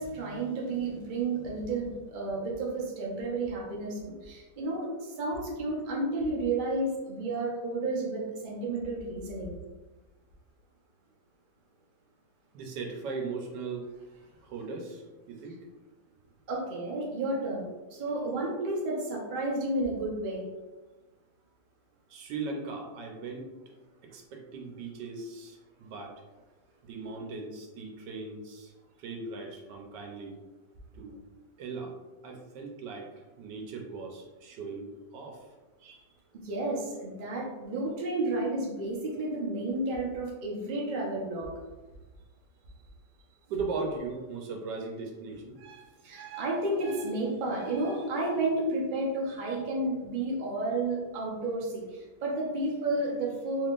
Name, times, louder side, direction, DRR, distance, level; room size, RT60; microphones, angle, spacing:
voice 1, 0.0-9.5 16.5-17.7 17.9-20.4 35.8-36.0 36.4-41.5 45.6-53.7, right 2 dB, 55° right, -3 dB, 0.5 m, -32 dB
voice 2, 12.5-13.9 14.4-15.7 22.1-23.5 24.0-26.2 26.8-28.7 29.0-30.4 30.9-31.2 31.6-32.0 32.2-35.5 43.5-45.5, right 4 dB, 75° right, 1 dB, 1.2 m, -38 dB
3.6 x 3.2 x 2.4 m, 1.2 s
omnidirectional pair, 2.0 m